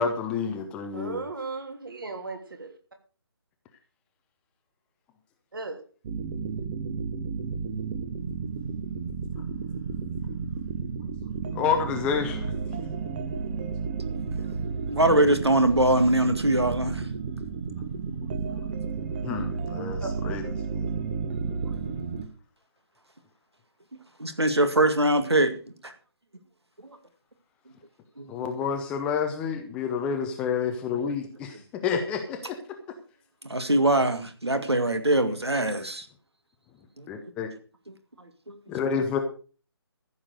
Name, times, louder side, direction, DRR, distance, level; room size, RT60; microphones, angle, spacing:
voice 1, 0.0-1.2 11.5-12.5 19.2-20.4 20.7-20.9 28.3-32.6 37.1-37.5 38.7-39.2, left 6 dB, 5° left, 0.6 m, -29 dB
voice 2, 0.9-2.7 5.5-5.8 20.0-20.1, right 3 dB, 55° right, 3.2 m, -35 dB
sound 1, 6.0-22.3, right 5 dB, 20° right, 0.9 m, -32 dB
voice 3, 14.9-17.1 24.2-25.6 25.8-25.9 28.2-28.3 30.9-31.0 33.5-36.1 37.0-37.1 38.5-38.6, right 1 dB, 75° right, 2.1 m, -22 dB
14.5 x 7.2 x 6.4 m
figure-of-eight pair, 150°, 14 cm